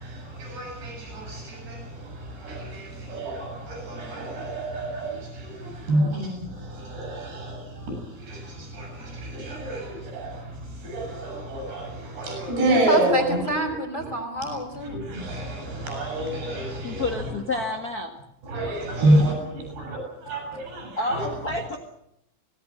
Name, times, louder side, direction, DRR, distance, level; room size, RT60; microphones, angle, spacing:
voice 1, 0.4-1.8 2.4-5.1 5.9-6.3 6.9-7.6 8.3-8.4 8.7-10.3 10.8-11.9 12.2-13.5 14.9-17.2 17.5-17.6 18.5-19.3 19.8-20.0 20.3-20.4 20.7-21.3, right 1 dB, 65° right, 2 dB, 9.6 m, -27 dB
voice 2, 12.7-15.0, right 1 dB, 15° left, 0 dB, 3.4 m, -27 dB
voice 3, 16.8-18.2 21.0-21.8, left 2 dB, 65° left, 4 dB, 0.9 m, -29 dB
25.5 x 18.5 x 7.6 m, 0.80 s
omnidirectional pair, 5.2 m